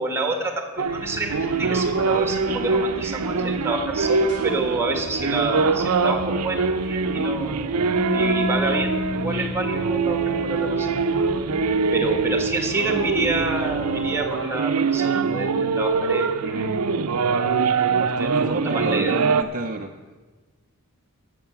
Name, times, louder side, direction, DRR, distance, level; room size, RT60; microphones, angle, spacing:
voice 1, 0.0-11.2 11.9-16.7 18.1-19.1, right 2 dB, 10° right, 5 dB, 1.5 m, -28 dB
sound 1, 0.8-19.4, right 4 dB, 90° right, 0.6 m, -23 dB
sound 2, 0.9-14.1, left 1 dB, 55° left, 2.3 m, -43 dB
Bass guitar, 7.9-14.2, left 3 dB, 90° left, 1.6 m, -33 dB
voice 2, 18.0-19.9, right 3 dB, 40° right, 4 dB, 0.6 m, -30 dB
12.5 x 7.6 x 6.9 m, 1.3 s
head